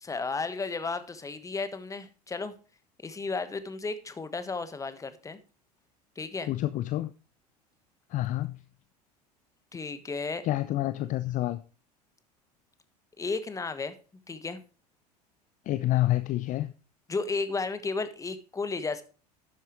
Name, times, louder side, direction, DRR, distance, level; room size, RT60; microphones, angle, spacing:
voice 1, 0.0-2.5 3.0-5.4 6.1-6.5 9.7-10.4 13.2-13.9 14.3-14.6 17.1-19.0, left 4 dB, 15° left, 12 dB, 1.3 m, -33 dB
voice 2, 6.5-7.1 8.1-8.6 10.5-11.6 15.7-16.7, left 15 dB, 40° left, 14 dB, 0.6 m, -28 dB
11.5 x 8.8 x 3.1 m, 0.37 s
figure-of-eight pair, 75°, 21 cm